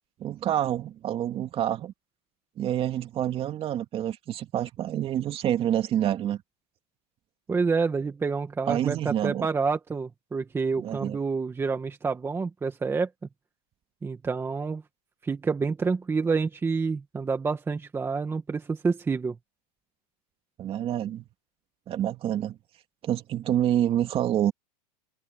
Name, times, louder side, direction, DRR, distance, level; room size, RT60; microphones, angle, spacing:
voice 1, 0.2-1.9 2.6-6.4 8.7-9.5 10.8-11.2 20.6-21.2 21.9-22.6 23.0-24.5, right 11 dB, 25° right, 2.7 m, -27 dB
voice 2, 7.5-13.1 14.0-14.8 15.2-19.4, right 4 dB, 10° right, 1.9 m, -28 dB
supercardioid pair, 145°, 21 cm